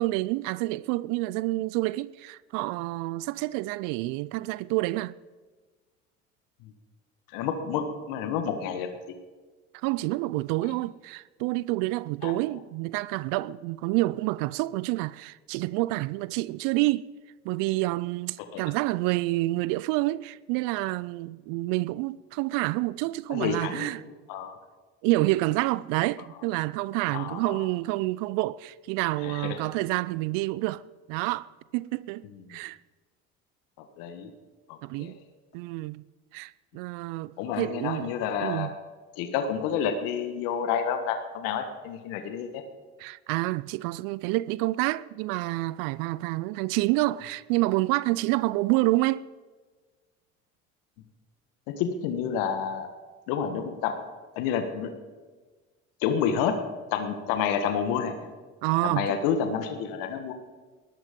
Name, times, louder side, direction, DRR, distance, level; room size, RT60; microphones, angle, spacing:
voice 1, 0.0-5.1 9.7-17.0 17.4-24.0 25.0-30.8 31.1-32.2 32.5-32.8 34.8-35.2 35.5-36.0 36.3-38.1 38.4-38.7 43.0-49.2 58.6-59.2, right 19 dB, 70° right, 0.5 m, -28 dB
voice 2, 7.3-8.9 12.2-12.3 18.5-18.6 23.3-23.9 24.3-24.6 27.1-27.6 29.2-29.6 32.5-32.6 34.0-34.3 34.7-35.2 37.4-38.7 39.2-42.6 51.7-52.9 53.3-53.9 54.3-54.9 56.0-56.6 56.9-58.3 58.8-60.3, left 7 dB, 70° left, 1.6 m, -29 dB
18.5 x 13.5 x 5.3 m
hypercardioid pair, 75°, 34 cm